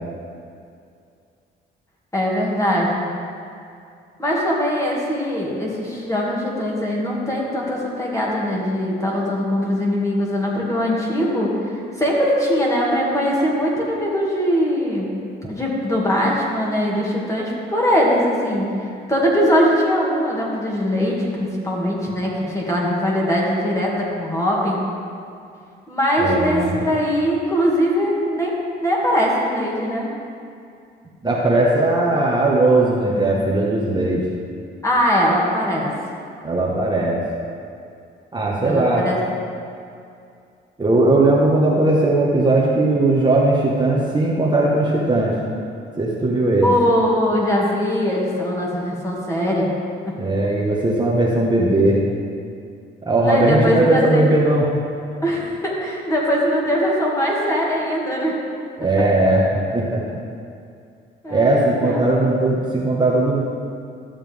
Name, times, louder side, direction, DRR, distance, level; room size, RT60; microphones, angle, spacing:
voice 1, 2.1-3.1 4.2-15.1 15.5-18.7 19.1-24.8 25.9-28.5 28.8-30.1 34.8-35.9 38.6-39.2 46.6-49.7 50.0-50.3 53.2-54.3 55.2-58.3 61.2-62.0, equal, 15° left, -4 dB, 2.4 m, -21 dB
voice 2, 26.2-26.8 31.2-34.2 36.4-37.2 38.3-39.1 40.8-45.3 46.0-46.7 50.2-52.0 53.0-54.6 58.8-59.4 59.7-60.0 61.3-63.4, right 2 dB, 20° right, -5 dB, 1.5 m, -18 dB
13.0 x 7.2 x 3.6 m, 2.4 s
cardioid pair, 90°, 20 cm